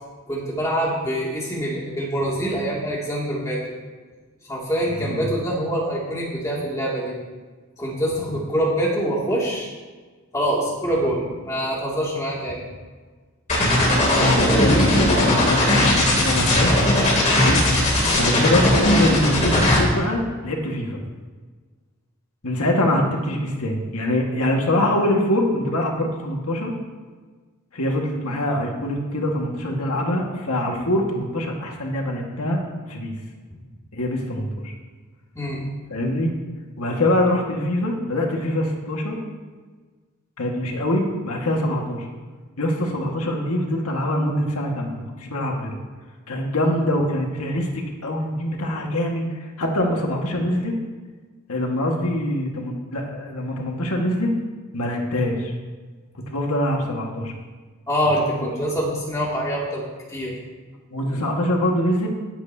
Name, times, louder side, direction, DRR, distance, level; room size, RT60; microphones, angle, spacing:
voice 1, 0.3-3.6 4.4-7.2 7.8-9.7 10.3-12.6 14.5-14.9 18.3-18.5 35.3-35.6 57.9-59.8 60.1-60.4, equal, 15° left, -5 dB, 2.4 m, -25 dB
sound 1, 13.5-19.8, left 1 dB, 35° left, 2.8 m, -18 dB
voice 2, 13.6-16.7 17.4-17.7 18.2-21.0 22.4-26.7 27.7-32.6 32.9-33.1 33.9-34.7 35.9-36.3 36.8-39.2 40.4-42.1 42.6-45.8 46.3-47.7 48.0-50.7 51.5-54.3 54.7-55.5 56.3-57.3 58.4-58.5 60.9-62.1, left 1 dB, 90° left, 0 dB, 1.7 m, -24 dB
19.0 x 8.1 x 2.8 m, 1.4 s
head